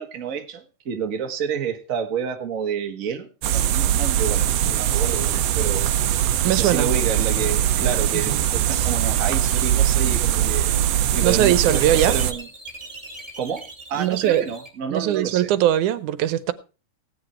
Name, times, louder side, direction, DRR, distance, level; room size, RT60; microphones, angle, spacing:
voice 1, 0.0-5.9 6.4-10.7 11.1-12.5 13.4-15.5, right 7 dB, 35° right, 1.5 m, -29 dB
sound 1, 3.4-12.3, right 11 dB, 70° right, 1.7 m, -21 dB
voice 2, 6.4-6.9 8.1-8.4 11.2-12.2 14.0-14.4 14.9-16.5, right 12 dB, 85° right, 2.3 m, -20 dB
sound 2, 7.7-14.7, right 2 dB, 10° right, 2.7 m, -42 dB
17.0 x 9.6 x 4.4 m
omnidirectional pair, 3.4 m